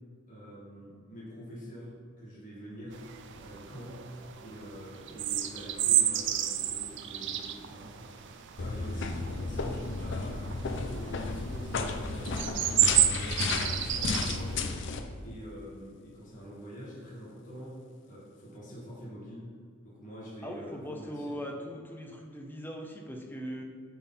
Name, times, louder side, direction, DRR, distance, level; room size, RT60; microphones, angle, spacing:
voice 1, 0.3-4.1 4.4-13.5 13.9-14.6 15.2-19.5 19.8-21.5, equal, 40° left, -6 dB, 1.8 m, -45 dB
sound 1, 2.9-14.7, right 11 dB, 60° right, 0.4 m, -32 dB
sound 2, 8.6-15.0, left 4 dB, 60° left, 0.5 m, -33 dB
voice 2, 20.4-23.6, equal, 10° left, 2 dB, 0.7 m, -40 dB
9.6 x 4.0 x 4.2 m, 2.1 s
head